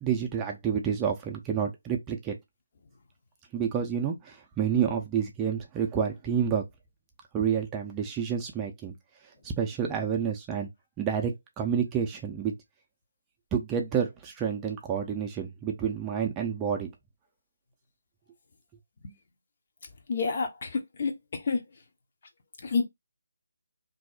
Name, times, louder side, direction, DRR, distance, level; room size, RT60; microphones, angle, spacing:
voice 1, 0.0-2.4 3.5-6.6 7.3-8.9 9.4-10.7 11.0-12.5 13.5-16.9, right 7 dB, 15° right, 0.5 m, -29 dB
voice 2, 20.1-21.1 21.5-21.6 22.6-22.8, left 4 dB, 45° left, 0.7 m, -28 dB
2.7 x 2.0 x 3.8 m
figure-of-eight pair, 150°, 0 cm